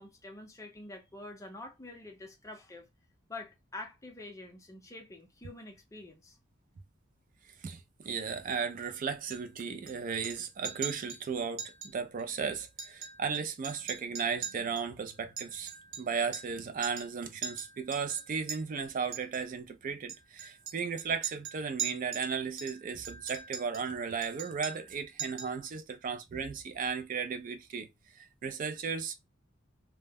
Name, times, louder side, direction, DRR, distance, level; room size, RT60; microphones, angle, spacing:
voice 1, 0.0-2.9 3.3-6.4, left 2 dB, 15° left, 0.5 m, -46 dB
voice 2, 7.6-15.7 16.0-27.9 28.1-29.1, right 6 dB, 40° right, 0.3 m, -35 dB
Chink clink, 9.3-9.9 10.2-10.4 10.6-11.2 11.6-11.9 12.2-12.3 12.7-13.4 13.6-16.6 16.8-17.1 17.4-18.6 19.1-19.4 20.1-22.3 22.6-23.9 24.2-24.9 25.2-25.6, right 8 dB, 75° right, 0.7 m, -41 dB
2.1 x 2.1 x 3.3 m
head